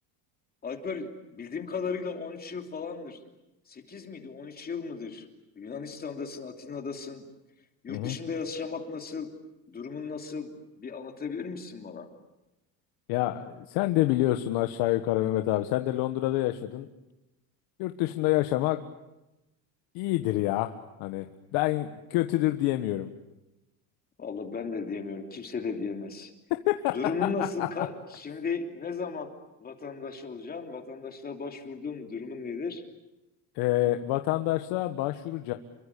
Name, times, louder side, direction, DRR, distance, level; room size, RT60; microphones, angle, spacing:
voice 1, 0.6-3.2 3.7-5.3 5.6-7.2 7.8-9.3 9.7-12.1 24.2-26.3 26.9-29.3 29.6-32.8, left 5 dB, 25° left, 4 dB, 3.1 m, -36 dB
voice 2, 13.1-16.9 17.8-18.8 19.9-20.7 21.0-23.1 26.7-26.9 27.6-27.9 33.5-35.5, left 16 dB, 75° left, 7 dB, 1.5 m, -27 dB
28.5 x 24.0 x 8.5 m, 0.96 s
cardioid pair, 140°, 37 cm